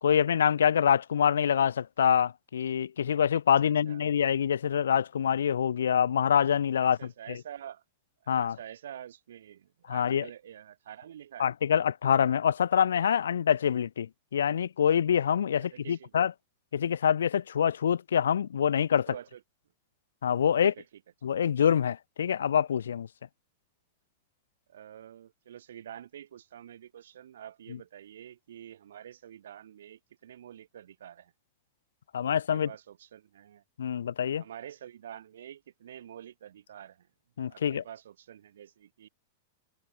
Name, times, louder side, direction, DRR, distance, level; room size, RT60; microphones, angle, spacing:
voice 1, 0.0-7.0 8.3-8.6 9.9-10.2 11.4-16.3 16.7-19.1 20.2-20.7 21.2-23.1 32.1-32.7 33.8-34.4 37.4-37.8, left 8 dB, 90° left, 0.4 m, -25 dB
voice 2, 3.6-4.0 6.8-7.8 8.2-11.5 15.6-16.2 19.1-19.4 20.6-20.9 24.7-31.3 32.3-33.6 34.4-37.1 37.5-39.1, right 10 dB, 80° right, 4.1 m, -47 dB
hypercardioid pair, 125°, 0 cm